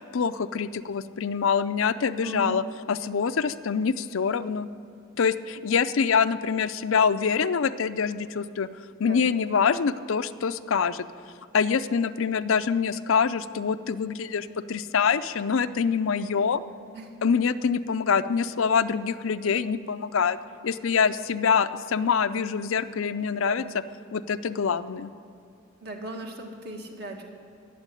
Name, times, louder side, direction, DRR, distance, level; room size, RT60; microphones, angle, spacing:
voice 1, 0.1-2.6 2.9-4.7 5.2-8.7 9.0-11.1 11.5-16.6 17.2-20.4 20.6-23.6 24.1-25.1, left 6 dB, 80° left, 12 dB, 0.5 m, -25 dB
voice 2, 2.2-2.6 9.0-9.3 16.9-17.1 23.4-23.6 25.8-27.2, right 1 dB, 50° right, 1 dB, 1.9 m, -38 dB
18.0 x 7.4 x 9.8 m, 2.5 s
head